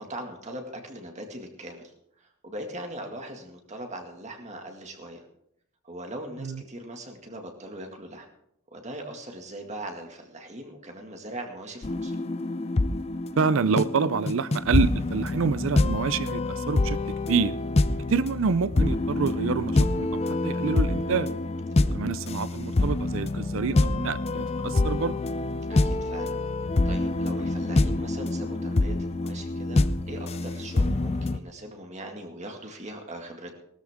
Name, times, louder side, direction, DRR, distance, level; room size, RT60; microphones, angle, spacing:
voice 1, 0.0-5.3 5.8-8.3 8.7-12.2 17.9-18.0 21.7-22.0 25.7-33.5, right 1 dB, 30° right, 3 dB, 2.0 m, -40 dB
sound 1, 11.8-31.4, left 2 dB, 25° left, 0.4 m, -26 dB
voice 2, 13.4-17.5 18.1-21.3 21.9-25.2, right 5 dB, 60° right, 16 dB, 0.5 m, -27 dB
19.0 x 13.0 x 3.6 m, 0.73 s
head